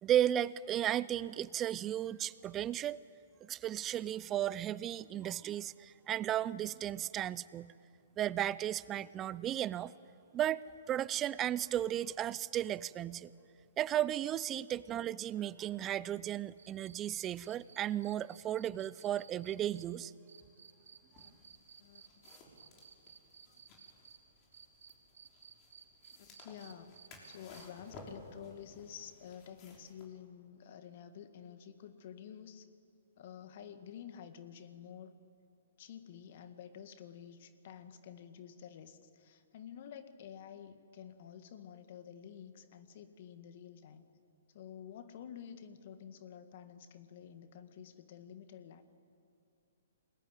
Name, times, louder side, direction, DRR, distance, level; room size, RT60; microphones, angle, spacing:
voice 1, 0.0-3.0 3.4-7.7 8.2-9.9 10.3-13.3 13.8-20.1, right 11 dB, 25° right, 19 dB, 0.6 m, -34 dB
sound 1, 16.6-24.2 24.5-27.9 29.5-29.6, right 6 dB, 75° right, 3.3 m, -57 dB
sound 2, 21.1-30.0, left 2 dB, 35° left, 6.2 m, -57 dB
voice 2, 23.5-23.9 26.2-26.9 27.3-32.7 33.2-35.2 35.8-44.0 44.5-48.8, left 8 dB, 50° left, 10 dB, 1.9 m, -50 dB
28.5 x 21.0 x 9.4 m, 2.5 s
hypercardioid pair, 125°, 0 cm